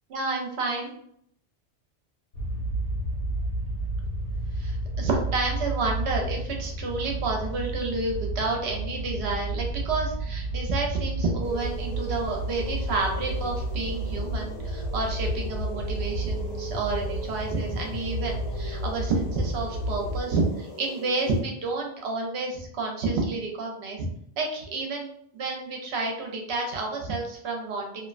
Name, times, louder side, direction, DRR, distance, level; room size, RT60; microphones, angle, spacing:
voice 1, 0.1-0.9 4.5-24.1 24.4-28.1, right 3 dB, 70° right, 1 dB, 0.8 m, -30 dB
sound 1, 2.3-20.2, right 1 dB, 85° left, 1.1 m, -31 dB
sound 2, 11.4-21.4, equal, 55° left, 0.5 m, -42 dB
2.6 x 2.1 x 2.4 m, 0.68 s
omnidirectional pair, 1.2 m